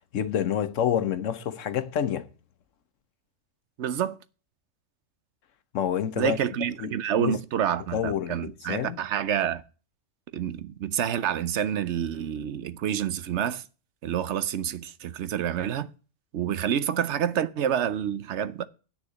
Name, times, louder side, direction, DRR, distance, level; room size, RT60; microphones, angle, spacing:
voice 1, 0.0-2.3 5.7-6.4 6.8-6.9 7.2-7.4 7.9-9.0, left 9 dB, 75° left, 1.3 m, -28 dB
voice 2, 3.8-4.2 6.2-9.6 10.3-13.6 14.0-15.9 16.3-18.6, right 9 dB, 65° right, 1.0 m, -28 dB
9.0 x 6.6 x 8.6 m
omnidirectional pair, 1.3 m